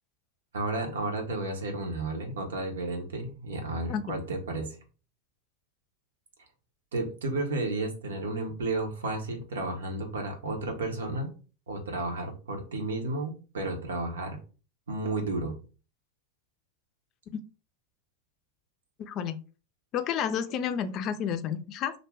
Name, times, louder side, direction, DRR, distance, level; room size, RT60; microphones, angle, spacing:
voice 1, 0.5-4.8 6.9-11.3 11.7-14.4 14.9-15.5, right 2 dB, 80° right, 4 dB, 0.8 m, -32 dB
voice 2, 19.1-19.4 19.9-21.9, left 8 dB, 45° left, 10 dB, 0.4 m, -30 dB
2.5 x 2.1 x 3.4 m, 0.35 s
hypercardioid pair, 100°, 0 cm